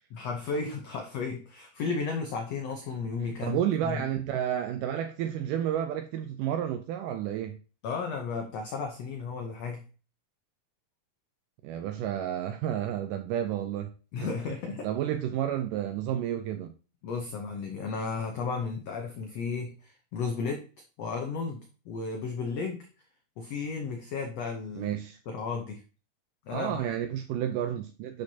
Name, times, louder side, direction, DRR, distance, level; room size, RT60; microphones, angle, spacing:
voice 1, 0.1-4.0 7.8-9.8 14.1-14.9 17.0-20.7 21.0-22.9 23.4-25.0 25.3-25.8 26.5-26.9, left 4 dB, 90° left, 1.4 m, -34 dB
voice 2, 3.4-7.6 11.6-13.9 14.2-14.3 14.8-16.8 24.8-25.2 26.5-28.2, right 10 dB, 80° right, 1.9 m, -31 dB
10.5 x 5.2 x 2.8 m
omnidirectional pair, 4.1 m